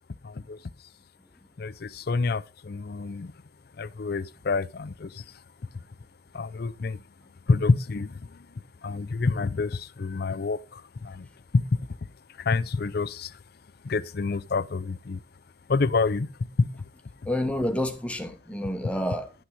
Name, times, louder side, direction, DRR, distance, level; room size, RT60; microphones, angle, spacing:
voice 1, 0.2-0.6 1.6-3.3 3.8-5.2 6.3-7.0 7.5-8.5 8.8-11.3 11.5-11.8 12.4-13.3 13.8-15.2 15.7-16.3 16.6-16.8, left 4 dB, 55° left, 0.5 m, -27 dB
voice 2, 17.3-19.3, left 1 dB, 5° left, 0.9 m, -29 dB
11.5 x 6.1 x 4.7 m
head